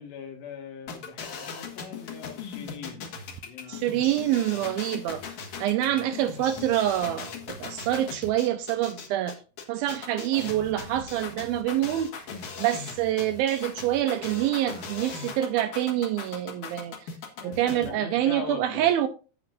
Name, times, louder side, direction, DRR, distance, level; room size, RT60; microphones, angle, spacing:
voice 1, 0.0-4.7 5.8-6.8 17.4-18.9, left 6 dB, 85° left, 3.9 m, -42 dB
sound 1, 0.9-17.9, left 6 dB, 60° left, 2.5 m, -39 dB
voice 2, 3.7-5.2 5.6-9.4 9.7-12.1 12.6-17.0 17.4-19.1, right 12 dB, 80° right, 2.2 m, -26 dB
sound 2, 6.3-8.9 10.4-13.5 14.1-16.6, right 6 dB, 60° right, 1.9 m, -49 dB
17.0 x 5.8 x 2.6 m
omnidirectional pair, 4.7 m